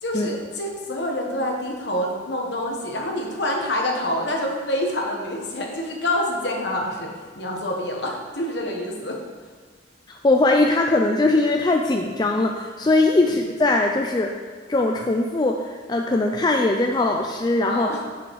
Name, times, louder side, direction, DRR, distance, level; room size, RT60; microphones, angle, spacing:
voice 1, 0.0-7.1 7.3-9.2 13.1-13.3 17.7-18.0, left 1 dB, 60° left, 0 dB, 1.3 m, -27 dB
voice 2, 10.1-14.3 14.7-17.9, left 2 dB, 20° left, 2 dB, 0.3 m, -20 dB
7.7 x 5.6 x 4.8 m, 1.5 s
head